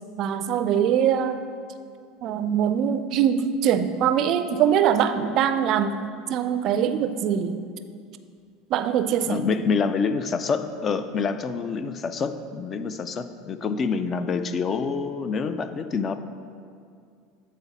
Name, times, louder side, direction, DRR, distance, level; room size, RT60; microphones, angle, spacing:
voice 1, 0.2-1.4 2.2-7.6 8.7-9.4, right 8 dB, 50° right, 10 dB, 0.4 m, -23 dB
voice 2, 9.3-16.1, left 5 dB, 35° left, 10 dB, 0.4 m, -27 dB
8.5 x 4.1 x 4.1 m, 2.2 s
supercardioid pair, 110°, 0 cm